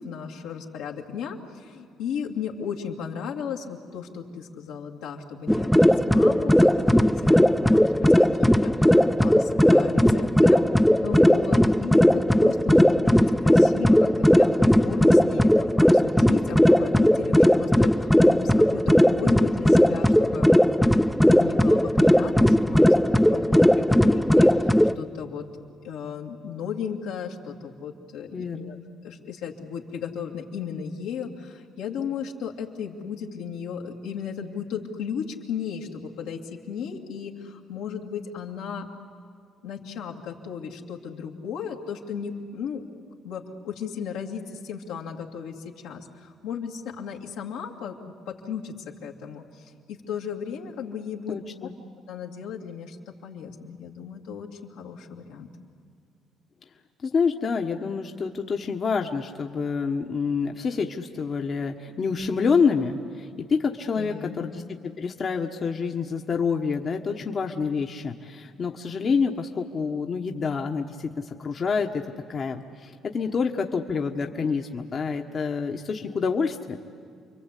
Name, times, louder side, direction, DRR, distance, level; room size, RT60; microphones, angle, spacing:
voice 1, 0.0-10.6 11.0-20.5 21.3-25.5 25.8-28.8 29.0-38.9 39.6-42.8 43.2-51.7 52.1-55.5 64.0-64.5, left 7 dB, 90° left, -1 dB, 2.5 m, -35 dB
sound 1, 5.5-24.9, equal, 5° left, 0.7 m, -18 dB
voice 2, 28.3-28.8 51.3-51.7 57.0-64.6 65.0-76.8, left 5 dB, 50° left, 3 dB, 1.3 m, -27 dB
29.5 x 23.0 x 8.4 m, 2.3 s
supercardioid pair, 75°, 0 cm